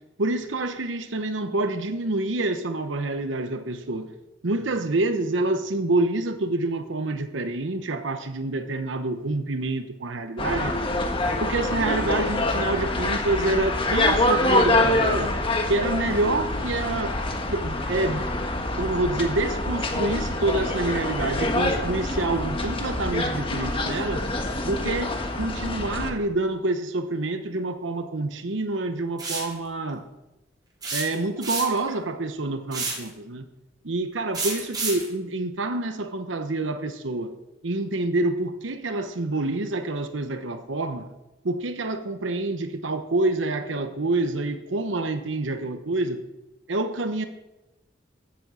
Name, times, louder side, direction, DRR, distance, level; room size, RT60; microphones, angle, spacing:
voice 1, 0.2-4.1 4.4-10.8 11.4-15.3 15.7-17.2 17.5-18.3 18.8-24.2 24.6-30.0 30.9-33.5 33.8-37.4 37.6-41.1 41.4-46.2 46.7-47.2, right 2 dB, 85° right, 8 dB, 0.9 m, -27 dB
sound 1, 10.4-26.1, left 1 dB, 30° left, 1.4 m, -25 dB
sound 2, 29.2-29.5 30.8-31.9 32.7-33.1 34.3-35.1, right 3 dB, 20° right, 4.2 m, -29 dB
13.5 x 7.4 x 7.7 m, 1.0 s
head